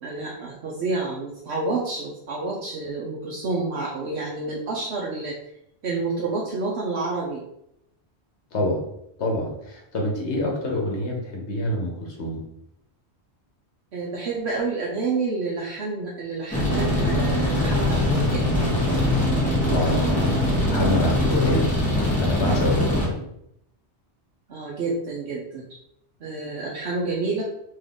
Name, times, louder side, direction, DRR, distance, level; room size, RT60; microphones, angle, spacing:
voice 1, 0.0-5.4 5.8-7.4 13.9-18.5 23.0-23.3 24.5-25.6 26.2-27.4, right 3 dB, 70° right, -4 dB, 1.0 m, -29 dB
voice 2, 8.5-8.9 9.2-12.4 19.6-20.3 20.7-21.7 22.2-23.2, left 1 dB, 75° left, 0 dB, 1.3 m, -26 dB
sound 1, 16.5-23.1, left 1 dB, 5° left, 1.4 m, -22 dB
3.9 x 3.2 x 3.5 m, 0.77 s
omnidirectional pair, 1.2 m